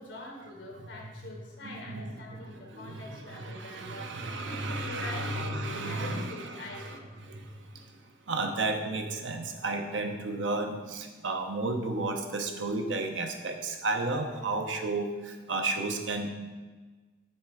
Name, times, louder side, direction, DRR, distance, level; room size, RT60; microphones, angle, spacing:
voice 1, 0.0-4.1 4.4-5.4 5.8-7.0, left 2 dB, 80° left, 0 dB, 1.4 m, -44 dB
voice 2, 1.9-7.0 7.3-7.8 8.3-16.3, right 2 dB, 90° right, 5 dB, 0.7 m, -33 dB
7.4 x 3.3 x 4.7 m, 1.3 s
head